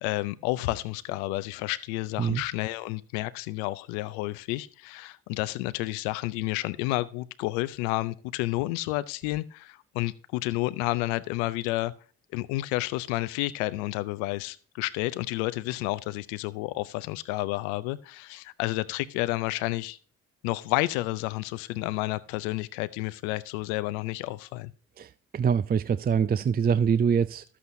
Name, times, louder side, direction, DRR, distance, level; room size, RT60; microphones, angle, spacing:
voice 1, 0.0-11.9 12.3-20.0 20.4-24.7, left 18 dB, 90° left, 0.5 m, -30 dB
voice 2, 25.0-27.4, right 7 dB, 30° right, 0.4 m, -24 dB
12.5 x 8.4 x 2.6 m
hypercardioid pair, 50°, 33 cm